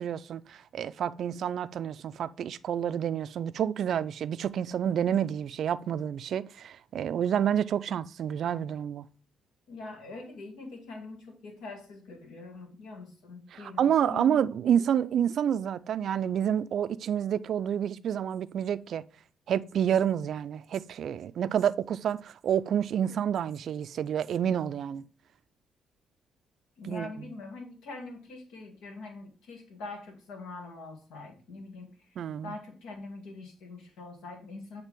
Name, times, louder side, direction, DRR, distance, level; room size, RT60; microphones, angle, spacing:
voice 1, 0.0-9.1 13.5-19.0 19.5-25.1 26.8-27.3 32.2-32.6, right 9 dB, 65° right, 0.3 m, -29 dB
voice 2, 9.7-14.3 26.8-31.9 32.4-34.8, left 3 dB, 90° left, 1.6 m, -43 dB
8.2 x 3.3 x 3.6 m
cardioid pair, 90°, 0 cm